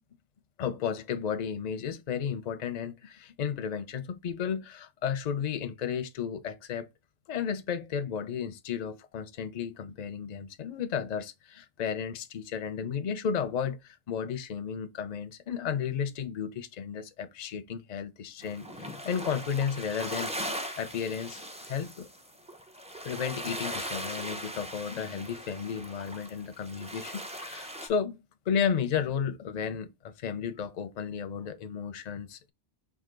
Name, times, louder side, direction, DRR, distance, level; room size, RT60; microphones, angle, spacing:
voice 1, 0.6-6.9 7.3-22.1 23.0-28.2 28.5-32.5, left 7 dB, 45° left, 0.6 m, -33 dB
sound 1, 18.4-27.9, equal, 10° right, 0.4 m, -39 dB
4.9 x 2.5 x 3.7 m
omnidirectional pair, 1.2 m